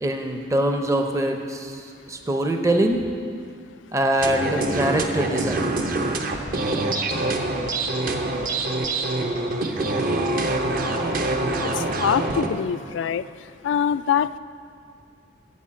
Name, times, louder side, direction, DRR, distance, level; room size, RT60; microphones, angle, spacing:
voice 1, 0.0-3.0 3.9-5.8, right 1 dB, 15° right, 4 dB, 0.6 m, -23 dB
sound 1, 4.2-12.5, right 2 dB, 50° right, 0.8 m, -25 dB
voice 2, 11.6-13.3 13.6-14.4, left 8 dB, 85° left, 15 dB, 0.3 m, -24 dB
8.6 x 7.7 x 7.5 m, 2.4 s
head